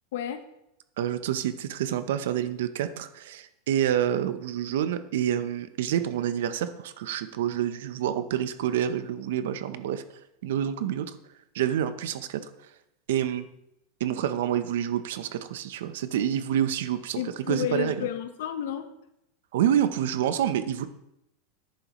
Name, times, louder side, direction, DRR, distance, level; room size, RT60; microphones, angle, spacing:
voice 1, 0.1-0.4 17.2-18.9, left 10 dB, 75° left, 9 dB, 0.7 m, -31 dB
voice 2, 1.0-10.0 10.4-11.1 11.5-12.5 13.1-13.5 14.0-18.1 19.5-20.9, right 10 dB, 75° right, 11 dB, 0.7 m, -28 dB
10.5 x 9.3 x 3.0 m, 0.82 s
supercardioid pair, 155°, 0 cm